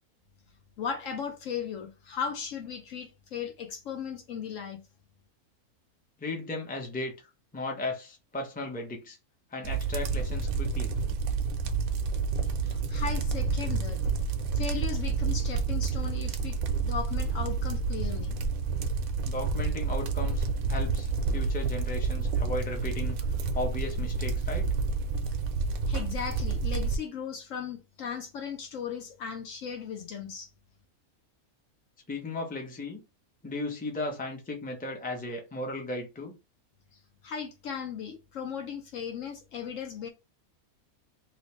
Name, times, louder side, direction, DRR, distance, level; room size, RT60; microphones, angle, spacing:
voice 1, 0.8-4.8 12.6-14.0 14.5-18.4 25.9-30.5 37.2-40.1, left 7 dB, 70° left, 0.9 m, -37 dB
voice 2, 6.2-9.2 9.5-10.9 19.2-23.2 23.5-24.7 32.1-33.0 33.4-36.4, left 2 dB, 10° left, 0.6 m, -36 dB
sound 1, 9.6-27.0, right 4 dB, 75° right, 1.0 m, -29 dB
3.0 x 2.7 x 3.2 m
omnidirectional pair, 1.5 m